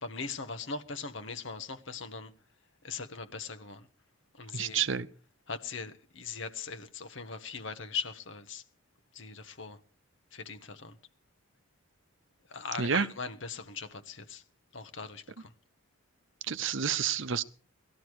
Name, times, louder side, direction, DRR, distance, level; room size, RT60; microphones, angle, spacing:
voice 1, 0.0-2.3 2.8-3.8 4.4-4.8 5.5-8.6 9.1-9.8 10.3-10.9 12.5-14.4 14.7-15.5, left 5 dB, 65° left, 1.3 m, -40 dB
voice 2, 4.5-5.1 12.8-13.1 16.5-17.4, right 7 dB, 65° right, 0.8 m, -29 dB
18.5 x 12.5 x 4.8 m
head